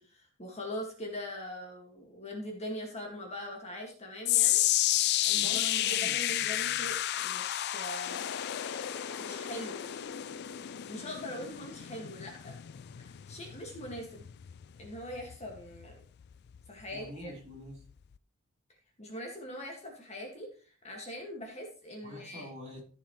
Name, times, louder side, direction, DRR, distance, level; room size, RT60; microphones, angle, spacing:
voice 1, 0.0-4.7 5.2-8.2 9.0-9.8 10.9-12.6 13.0-14.2 14.8-15.9 16.7-17.3 19.0-22.5, equal, 30° left, 1 dB, 1.9 m, -42 dB
sound 1, 4.2-16.6 16.9-17.2 17.9-18.0, left 14 dB, 45° left, 0.3 m, -32 dB
voice 2, 5.3-6.9 16.9-17.8 22.0-22.8, equal, 30° right, -4 dB, 4.0 m, -46 dB
sound 2, 8.0-13.5, left 5 dB, 75° left, 0.8 m, -45 dB
14.5 x 6.6 x 3.2 m, 0.40 s
head